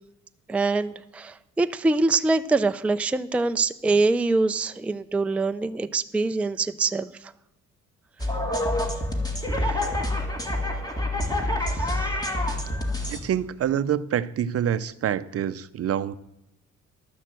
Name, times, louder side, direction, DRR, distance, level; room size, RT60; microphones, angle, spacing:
voice 1, 0.5-7.1 9.6-9.8 11.6-12.1, right 3 dB, 5° right, 10 dB, 0.4 m, -24 dB
sound 1, 8.2-13.2, left 1 dB, 10° left, 1.9 m, -27 dB
voice 2, 13.1-16.2, right 9 dB, 50° right, 15 dB, 0.6 m, -26 dB
12.0 x 6.6 x 7.6 m, 0.86 s
cardioid pair, 90°, 30 cm